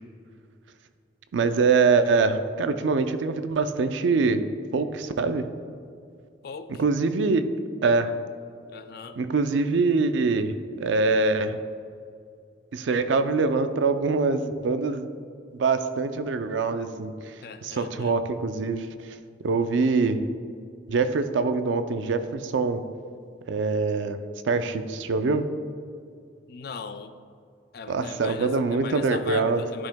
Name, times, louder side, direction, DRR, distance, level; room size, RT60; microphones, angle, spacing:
voice 1, 1.3-4.4 4.7-5.5 6.8-7.5 7.8-8.1 9.2-11.6 12.7-15.0 15.5-17.3 17.6-19.1 19.4-20.2 20.9-22.8 23.5-24.2 24.4-25.5 27.9-29.6, right 4 dB, 80° right, 10 dB, 0.4 m, -24 dB
voice 2, 6.4-6.8 8.7-9.2 17.4-18.1 26.5-27.1 27.7-29.9, left 5 dB, 55° left, 10 dB, 0.3 m, -39 dB
11.5 x 5.5 x 2.2 m, 2.3 s
head